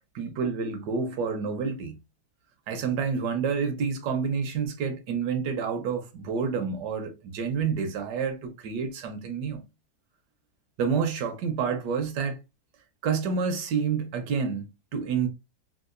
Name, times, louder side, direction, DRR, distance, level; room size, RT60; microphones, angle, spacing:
voice 1, 0.1-1.9 2.7-9.6 10.8-12.4 13.0-14.6 14.9-15.3, right 6 dB, 70° right, 1.1 m, -28 dB
3.7 x 2.3 x 2.4 m
omnidirectional pair, 2.2 m